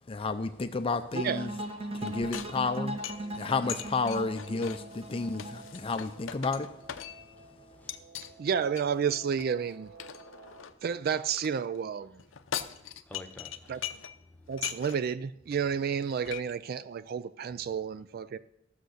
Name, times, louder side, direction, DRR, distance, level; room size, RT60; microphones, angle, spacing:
voice 1, 0.1-1.5 2.0-3.0 3.4-6.7, left 4 dB, 30° left, 0.5 m, -31 dB
sound 1, 1.1-6.2, right 1 dB, 30° right, 1.3 m, -38 dB
voice 2, 1.1-1.5 8.4-9.9 10.8-12.1 13.7-13.8 14.5-18.4, right 7 dB, 50° right, 0.3 m, -31 dB
Guitar, 1.2-10.7, right 3 dB, 70° right, 1.3 m, -53 dB
sound 2, 2.0-7.4 7.9-8.3 8.8-11.5 12.2-14.2 14.5-15.1 15.5-15.6 15.9-16.4, left 9 dB, 75° left, 0.7 m, -41 dB
voice 3, 7.3-8.5 10.4-10.8 12.7-13.9 14.2-14.6, left 2 dB, 10° left, 1.0 m, -53 dB
14.5 x 6.6 x 6.5 m
head